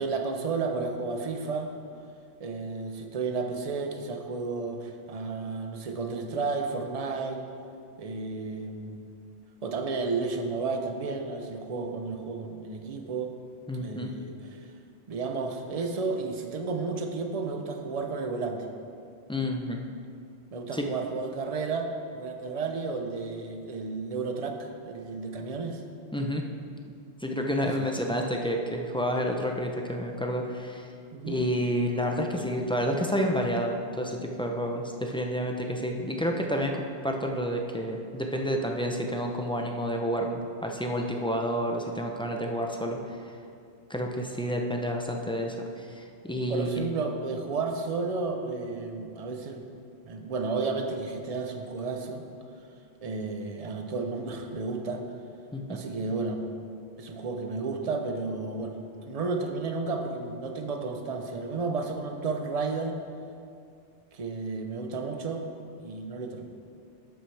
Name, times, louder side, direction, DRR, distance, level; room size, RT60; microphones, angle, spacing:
voice 1, 0.0-1.7 2.4-7.4 8.0-9.1 9.6-13.3 13.8-14.6 15.1-18.6 20.5-24.6 24.8-25.8 27.6-27.9 31.1-31.5 46.5-49.6 50.0-52.2 53.0-55.0 55.7-56.5 57.0-63.0 64.1-65.4 65.8-66.4, right 4 dB, 35° right, 4 dB, 0.7 m, -32 dB
voice 2, 13.7-14.1 19.3-19.8 20.7-20.9 26.1-26.4 27.2-30.9 31.2-43.3 43.9-46.8 55.5-55.8, equal, 5° left, 1 dB, 0.4 m, -29 dB
11.5 x 7.9 x 3.4 m, 2.4 s
omnidirectional pair, 1.2 m